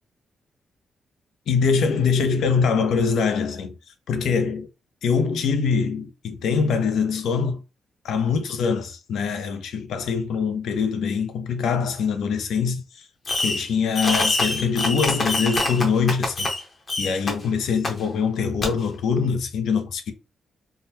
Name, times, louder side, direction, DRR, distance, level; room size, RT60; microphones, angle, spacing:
voice 1, 1.5-3.7 4.1-4.7 5.0-7.6 8.0-12.8 13.4-16.5 17.0-20.1, left 5 dB, 80° left, 0.5 m, -23 dB
Fireworks, 13.3-13.7 13.9-16.6 16.9-17.3 17.8-17.9 18.6-18.7, left 2 dB, 35° left, 0.8 m, -24 dB
3.7 x 2.1 x 2.8 m
cardioid pair, 140°, 0 cm